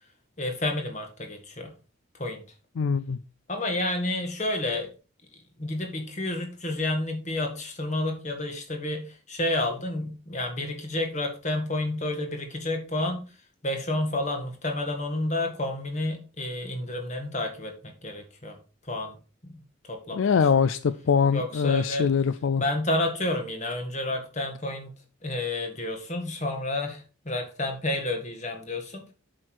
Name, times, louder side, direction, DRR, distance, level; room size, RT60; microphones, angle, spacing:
voice 1, 0.4-1.7 2.1-2.4 3.5-4.9 5.6-13.3 13.6-18.6 18.8-19.2 19.4-19.6 19.9-20.3 21.3-22.1 22.6-24.9 25.2-29.1, left 1 dB, 35° left, 4 dB, 1.9 m, -30 dB
voice 2, 2.8-3.2 20.1-22.6, left 6 dB, 70° left, 13 dB, 0.4 m, -23 dB
7.6 x 6.3 x 4.7 m, 0.35 s
head